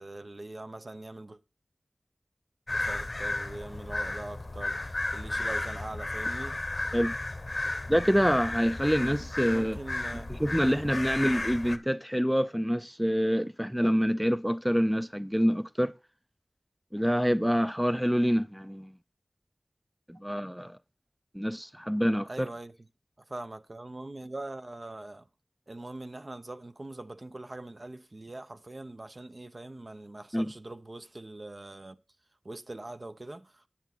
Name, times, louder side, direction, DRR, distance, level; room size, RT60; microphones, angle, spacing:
voice 1, 0.0-1.4 2.7-6.6 9.5-10.4 22.3-22.7 23.3-25.3 25.7-32.0 32.4-33.7, right 2 dB, 45° right, 0.7 m, -42 dB
sound 1, 2.7-11.8, left 2 dB, 45° left, 0.8 m, -34 dB
voice 2, 7.9-9.8 10.3-15.9 16.9-18.9 20.1-20.8 21.3-22.5 30.3-30.5, equal, 5° right, 0.4 m, -26 dB
10.0 x 8.1 x 4.3 m
wide cardioid pair, 65°, 0 cm